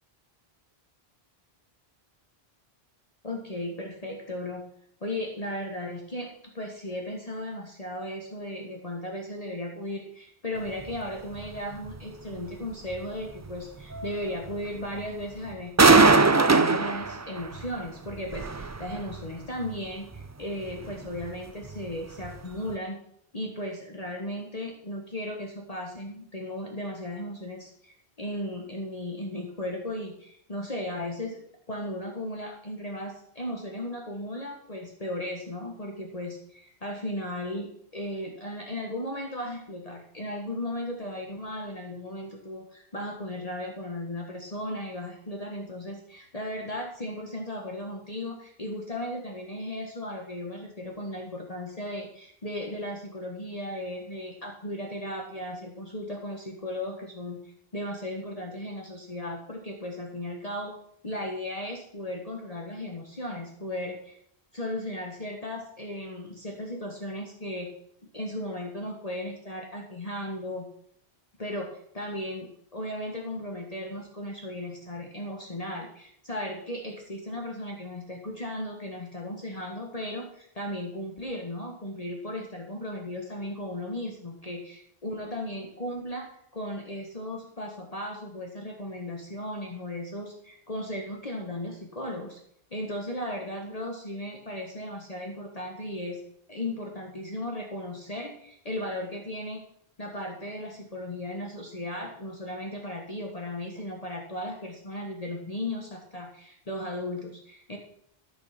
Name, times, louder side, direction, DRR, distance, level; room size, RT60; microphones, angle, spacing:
voice 1, 3.2-4.7 5.0-23.0 23.3-31.4 31.7-57.4 57.7-60.7 61.0-64.2 64.5-67.7 68.1-70.7 71.4-92.4 92.7-96.2 96.5-99.6 100.0-107.8, left 1 dB, 40° left, 1 dB, 1.5 m, -36 dB
sound 1, 10.8-11.0 11.4-11.6 11.9-12.0 12.4-12.5 12.9-13.0 13.3-13.5 13.9-14.5 15.0-15.2 15.5-15.6 15.8-17.7 18.1-19.3 19.6-19.8 20.1-20.3 20.7-21.3 21.7-21.9 22.2-22.4 22.7-22.8, right 3 dB, 30° right, 0.3 m, -22 dB
14.0 x 6.5 x 5.9 m, 0.68 s
omnidirectional pair, 1.0 m